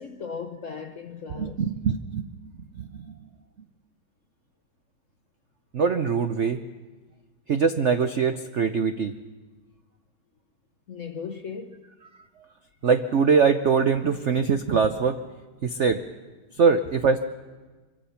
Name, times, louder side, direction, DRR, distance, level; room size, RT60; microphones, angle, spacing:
voice 1, 0.0-1.6 10.9-11.8, left 6 dB, 60° left, 0.8 m, -37 dB
voice 2, 1.4-2.3 2.8-3.1 5.7-6.6 7.5-9.1 12.8-15.2 15.6-16.0 16.6-17.2, right 5 dB, 80° right, 0.6 m, -22 dB
24.5 x 23.5 x 5.8 m
omnidirectional pair, 2.3 m